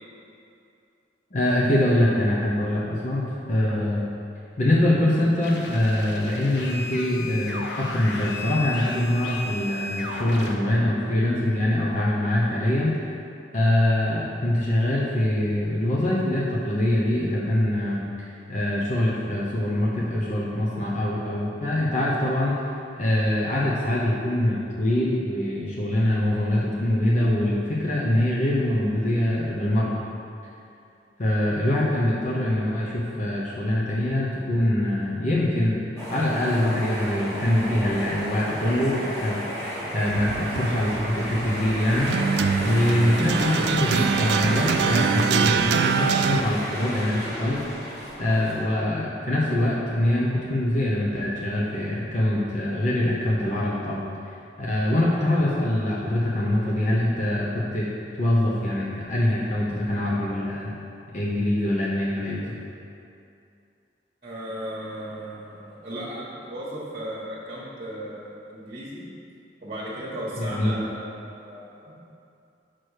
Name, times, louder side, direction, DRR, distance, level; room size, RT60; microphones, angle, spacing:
voice 1, 1.3-4.0 4.6-13.2 13.5-30.0 31.2-35.8 36.1-39.4 39.9-42.1 42.6-47.6 48.2-57.9 58.2-60.8 61.1-62.6 70.4-70.8, left 1 dB, 45° left, -6 dB, 0.9 m, -24 dB
sound 1, 5.4-10.5, left 3 dB, 80° left, 0.8 m, -35 dB
sound 2, 36.0-48.6, equal, 15° left, 1.5 m, -32 dB
sound 3, 40.0-46.4, right 6 dB, 70° right, 0.3 m, -25 dB
voice 2, 64.2-69.0 69.6-72.0, right 1 dB, 40° right, -7 dB, 1.3 m, -36 dB
6.2 x 4.7 x 6.5 m, 2.6 s
head